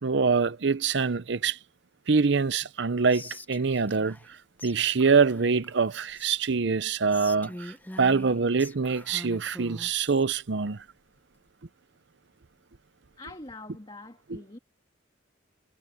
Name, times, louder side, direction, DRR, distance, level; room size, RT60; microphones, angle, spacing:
voice 1, 0.0-1.6 2.1-4.2 4.6-10.8 14.3-14.4, right 5 dB, 65° right, 0.7 m, -25 dB
Whispering, 3.1-4.3 4.6-4.7 5.0-6.5 7.1-10.2, left 1 dB, 10° left, 0.8 m, -44 dB
voice 2, 13.2-14.6, left 2 dB, 25° left, 1.8 m, -44 dB
head